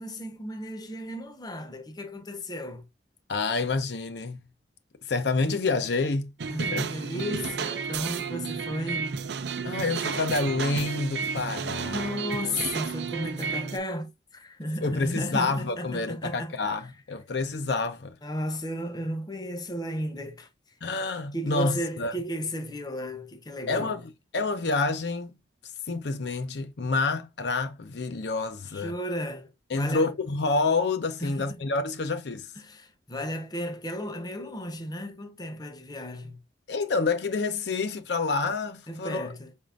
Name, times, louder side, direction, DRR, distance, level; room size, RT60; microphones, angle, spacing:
voice 1, 0.0-2.9 6.5-9.1 11.8-16.5 18.2-20.5 21.3-24.0 28.7-29.5 29.7-30.1 31.2-31.6 32.6-36.4 38.9-39.5, equal, 20° left, 0.7 m, -34 dB
voice 2, 3.3-4.4 5.0-6.9 9.6-12.1 14.8-18.2 20.8-22.1 23.7-25.3 25.9-28.9 29.7-32.5 36.7-39.3, left 3 dB, 70° left, 0.6 m, -28 dB
sound 1, 6.4-13.8, right 6 dB, 70° right, 0.5 m, -32 dB
5.0 x 3.6 x 2.4 m
head